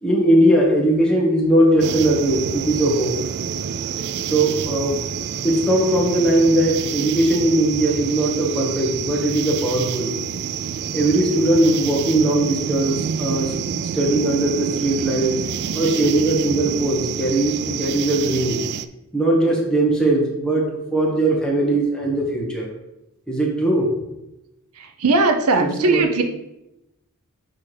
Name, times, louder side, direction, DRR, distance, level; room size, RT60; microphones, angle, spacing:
voice 1, 0.0-3.1 4.3-5.0 5.4-10.1 10.9-13.5 13.9-15.4 15.7-18.6 19.1-22.7 23.3-23.9 25.6-26.1, right 1 dB, 5° left, -4 dB, 1.6 m, -19 dB
sound 1, 1.8-18.9, right 8 dB, 50° right, 0.3 m, -28 dB
voice 2, 25.0-26.2, right 3 dB, 80° right, 5 dB, 0.7 m, -18 dB
10.5 x 3.6 x 3.4 m, 0.90 s
head